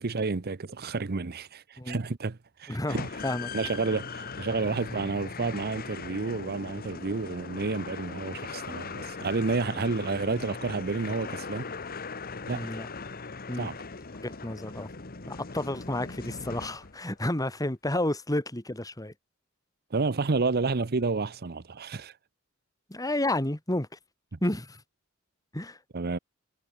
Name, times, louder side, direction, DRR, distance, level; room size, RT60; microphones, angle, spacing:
voice 1, 0.0-3.1 3.5-11.7 12.5-12.7 13.5-13.7 19.9-22.1 24.3-24.4 25.9-26.2, right 3 dB, 50° right, 0.8 m, -30 dB
voice 2, 2.7-3.5 12.5-12.9 13.5-13.7 14.2-14.9 15.3-19.1 22.9-23.9 24.4-24.8 25.5-25.8, left 1 dB, 15° left, 2.4 m, -31 dB
sound 1, 2.9-17.1, left 4 dB, 45° left, 1.3 m, -39 dB
head